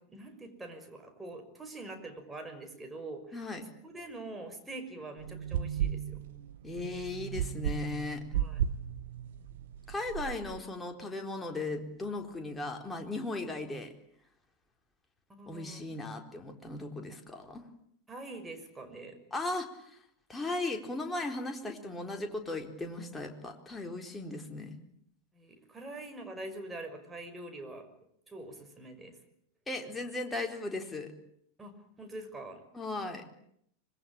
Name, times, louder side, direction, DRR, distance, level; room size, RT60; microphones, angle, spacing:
voice 1, 0.0-3.4 3.8-6.2 8.3-8.6 15.3-16.0 18.1-19.2 25.3-27.9 28.3-29.2 31.6-31.7 32.0-32.6, right 2 dB, 10° right, 6 dB, 6.1 m, -44 dB
voice 2, 3.3-3.6 6.6-8.2 9.9-13.9 15.5-17.6 19.3-20.0 20.3-24.8 29.7-31.1 32.7-33.3, left 2 dB, 10° left, 3 dB, 4.3 m, -37 dB
sound 1, 5.2-10.6, right 9 dB, 55° right, 1.6 m, -35 dB
26.0 x 22.0 x 8.8 m, 0.71 s
figure-of-eight pair, 90°, 0 cm